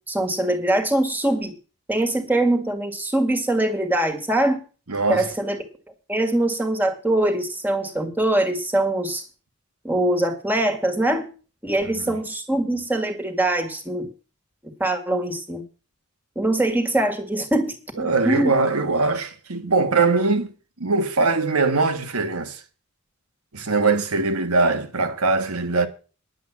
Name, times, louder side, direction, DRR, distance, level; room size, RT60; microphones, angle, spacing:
voice 1, 0.1-1.5 1.9-4.6 5.1-5.6 6.1-9.2 9.8-11.3 11.6-14.1 14.8-15.6 16.3-18.6, right 1 dB, 10° right, 1.7 m, -23 dB
voice 2, 4.9-5.2 11.9-12.0 18.0-20.5 20.8-22.6 23.5-25.9, right 3 dB, 90° right, 1.6 m, -21 dB
10.5 x 8.1 x 7.1 m
head